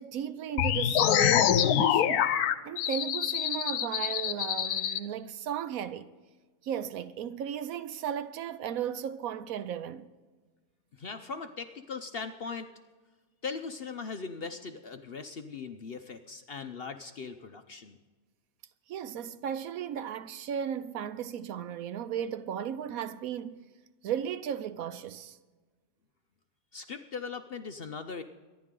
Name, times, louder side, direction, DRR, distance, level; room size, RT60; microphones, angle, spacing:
voice 1, 0.0-2.3 2.6-6.1 6.6-10.1 18.9-23.6 24.0-25.4, right 9 dB, 70° right, 1.1 m, -35 dB
sound 1, 0.6-5.0, left 10 dB, 90° left, 1.2 m, -25 dB
voice 2, 10.9-12.7 13.4-18.0 26.7-28.2, left 5 dB, 55° left, 0.7 m, -39 dB
24.5 x 11.0 x 3.8 m
omnidirectional pair, 1.6 m